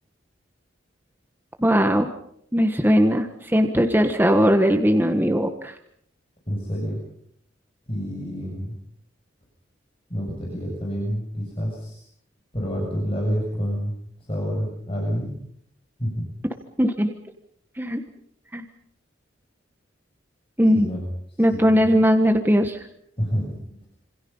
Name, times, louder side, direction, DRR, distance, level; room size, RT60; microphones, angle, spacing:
voice 1, 1.6-2.1 2.5-5.8 16.8-17.1 17.8-18.0 18.5-18.6 20.6-20.9 21.4-22.9, equal, 10° right, 5 dB, 1.5 m, -19 dB
voice 2, 6.5-7.0 7.9-8.7 10.1-12.0 12.5-13.9 14.3-15.3 16.0-16.3 20.7-21.0 21.3-21.9 23.2-23.5, equal, 30° left, -2 dB, 7.1 m, -28 dB
27.5 x 26.5 x 5.6 m, 0.67 s
head